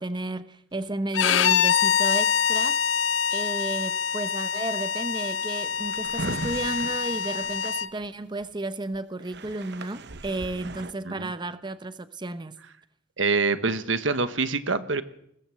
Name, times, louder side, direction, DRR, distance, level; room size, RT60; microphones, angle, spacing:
voice 1, 0.0-3.0 3.3-12.6, right 2 dB, 25° right, 0.8 m, -33 dB
Bowed string instrument, 1.1-7.9, left 7 dB, 75° left, 0.8 m, -25 dB
Drawer open or close, 5.7-8.4 8.9-9.0 9.2-10.9, right 3 dB, 60° right, 1.0 m, -37 dB
voice 2, 13.2-15.0, right 4 dB, 80° right, 1.3 m, -25 dB
21.5 x 17.0 x 7.7 m
head